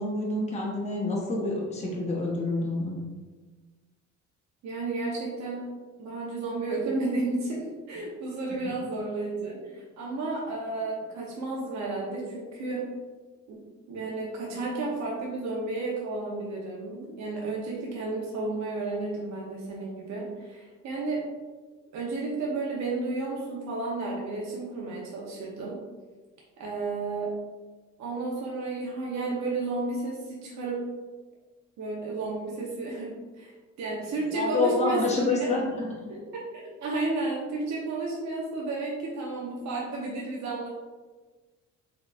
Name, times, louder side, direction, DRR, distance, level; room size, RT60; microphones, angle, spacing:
voice 1, 0.0-2.9 34.3-35.9, left 2 dB, 20° left, -4 dB, 0.9 m, -27 dB
voice 2, 4.6-5.7 6.0-12.9 13.5-13.6 13.9-21.3 21.9-25.8 26.6-27.3 28.0-30.8 31.8-35.5 36.1-40.7, right 2 dB, 65° right, -3 dB, 0.8 m, -32 dB
3.7 x 3.6 x 2.4 m, 1.3 s
cardioid pair, 90°, 30 cm